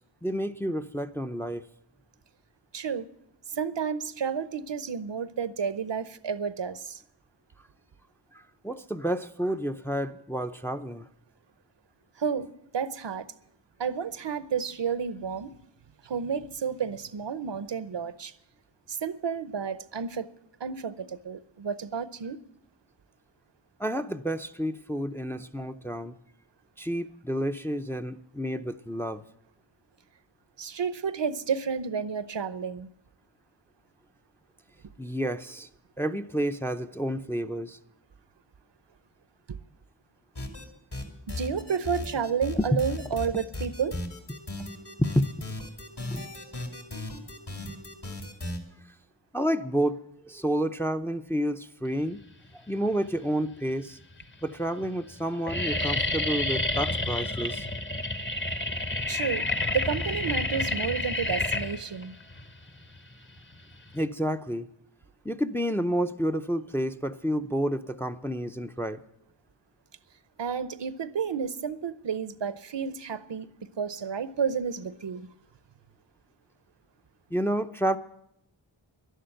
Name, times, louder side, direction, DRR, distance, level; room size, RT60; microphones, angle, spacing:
voice 1, 0.2-1.6 8.3-11.1 23.8-26.2 26.8-29.2 35.0-35.7 36.0-37.8 42.6-42.7 45.1-45.5 46.1-46.3 49.3-52.2 52.7-54.0 54.4-57.7 63.9-64.7 65.2-69.0 77.3-78.0, equal, 5° left, 0.6 m, -30 dB
voice 2, 2.7-3.1 3.5-7.0 12.2-13.3 13.8-15.6 16.0-18.3 18.9-20.3 20.6-22.4 30.6-32.9 39.5-39.6 41.3-44.0 59.1-62.1 70.4-73.5 73.8-75.3, right 6 dB, 65° right, 0.8 m, -31 dB
sound 1, 40.4-40.6 40.9-48.6, left 2 dB, 55° left, 2.7 m, -36 dB
sound 2, 52.9-53.4 54.1-54.2 54.5-54.9 55.1-64.1, left 2 dB, 25° left, 1.0 m, -30 dB
11.5 x 11.0 x 7.8 m
wide cardioid pair, 50°, 47 cm